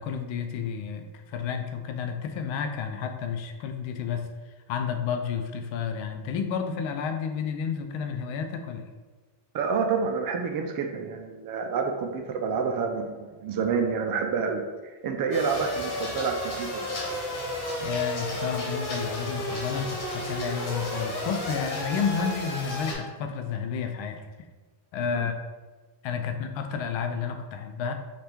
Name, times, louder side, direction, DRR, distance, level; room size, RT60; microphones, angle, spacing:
voice 1, 0.0-4.3 4.7-8.8 17.8-24.3 24.9-25.4 26.0-27.9, left 6 dB, 65° left, 6 dB, 0.6 m, -31 dB
voice 2, 9.5-17.0 25.1-25.3, right 5 dB, 45° right, 4 dB, 0.5 m, -28 dB
sound 1, 15.3-22.9, left 1 dB, 40° left, 1.3 m, -32 dB
3.3 x 2.5 x 4.5 m, 1.3 s
cardioid pair, 130°, 50 cm